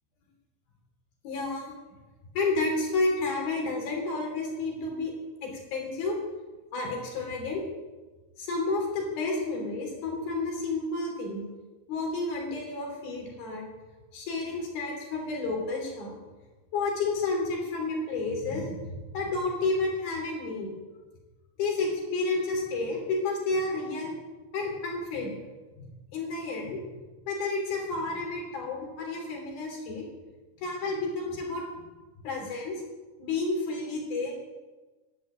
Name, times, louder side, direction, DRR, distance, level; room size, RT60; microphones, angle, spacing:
voice 1, 1.2-1.7 2.3-5.1 5.4-6.2 6.7-7.6 8.4-11.4 11.9-13.6 14.1-16.2 16.7-20.8 21.6-24.1 24.5-25.4 25.8-25.9 26.1-26.8 27.3-30.0 30.6-31.6 32.2-32.8 33.2-34.4, left 3 dB, 70° left, 0 dB, 5.1 m, -31 dB
11.5 x 10.5 x 9.2 m, 1.2 s
omnidirectional pair, 4.6 m